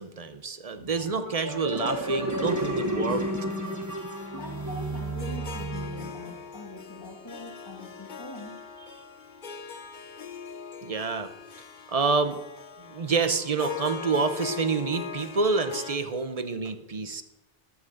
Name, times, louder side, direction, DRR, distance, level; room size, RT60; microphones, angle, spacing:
voice 1, 0.0-3.3 10.8-11.3 11.9-12.4 12.8-17.2, right 4 dB, 40° right, 9 dB, 0.8 m, -28 dB
sound 1, 0.9-6.3, right 1 dB, 15° right, 1.3 m, -32 dB
Harp, 1.9-16.0, left 6 dB, 50° left, 1.0 m, -42 dB
voice 2, 4.3-8.6, left 2 dB, 25° left, 1 dB, 2.1 m, -42 dB
13.0 x 5.9 x 6.6 m, 1.0 s
omnidirectional pair, 1.0 m